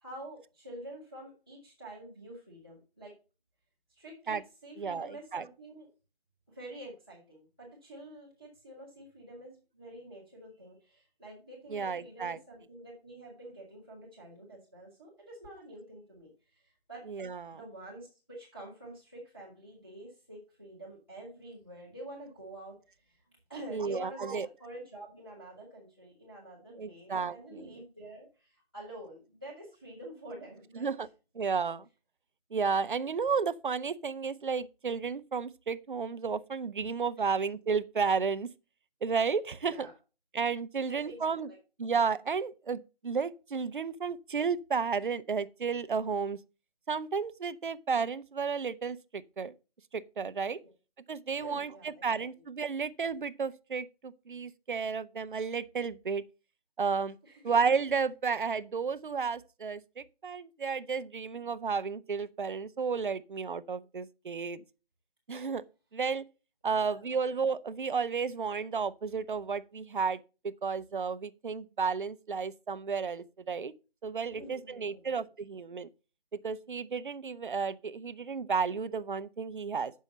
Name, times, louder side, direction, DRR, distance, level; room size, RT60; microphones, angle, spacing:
voice 1, 0.0-3.1 3.9-5.9 6.5-17.0 17.5-23.2 23.5-30.9 37.2-37.3 39.6-39.9 40.8-41.6 50.6-50.7 51.4-52.2 57.2-57.4 66.8-67.2 74.3-75.1, right 1 dB, 10° left, 1.2 m, -48 dB
voice 2, 4.8-5.4 11.7-12.4 17.1-17.6 23.7-24.5 26.8-27.7 30.8-31.1 31.4-31.9 32.5-38.5 39.0-39.9 40.3-41.5 41.8-46.4 46.9-49.5 49.9-50.6 51.1-56.2 56.8-57.1 57.4-64.6 65.3-65.6 65.9-66.2 66.6-73.7 74.0-75.9 76.4-79.9, right 5 dB, 55° right, 0.5 m, -32 dB
7.2 x 5.5 x 5.3 m
figure-of-eight pair, 180°, 31 cm